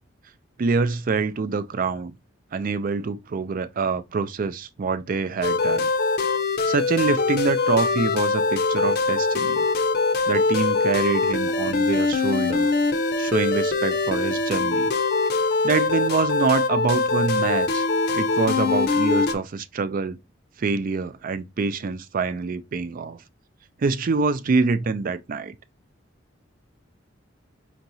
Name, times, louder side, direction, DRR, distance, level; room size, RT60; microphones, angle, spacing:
voice 1, 0.6-2.1 2.5-5.9 6.6-9.6 10.3-12.7 13.2-14.9 15.4-17.9 18.1-20.2 20.6-23.2 23.8-25.5, right 4 dB, 45° right, 0.4 m, -25 dB
sound 1, 5.4-19.3, left 3 dB, 55° left, 0.6 m, -23 dB
4.5 x 3.0 x 2.6 m
head